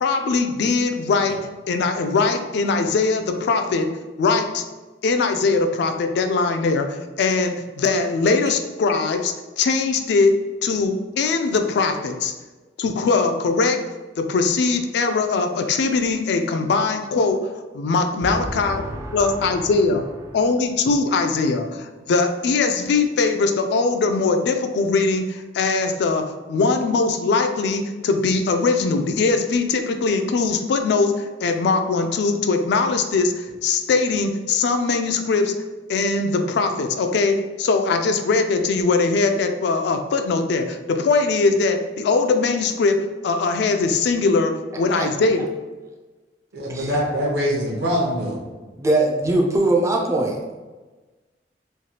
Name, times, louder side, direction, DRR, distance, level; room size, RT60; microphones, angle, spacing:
voice 1, 0.0-1.4 1.7-3.9 4.2-4.6 5.0-10.3 10.6-12.3 12.8-13.8 14.2-17.4 17.7-18.8 19.1-20.0 20.3-35.5 35.9-45.4, left 4 dB, 70° left, 7 dB, 0.3 m, -21 dB
voice 2, 18.3-19.6 44.9-45.2 46.7-46.9 48.8-50.4, right 2 dB, 15° right, 0 dB, 0.3 m, -22 dB
voice 3, 46.5-48.4, equal, 65° right, -2 dB, 0.8 m, -23 dB
3.2 x 2.3 x 2.8 m, 1.2 s
head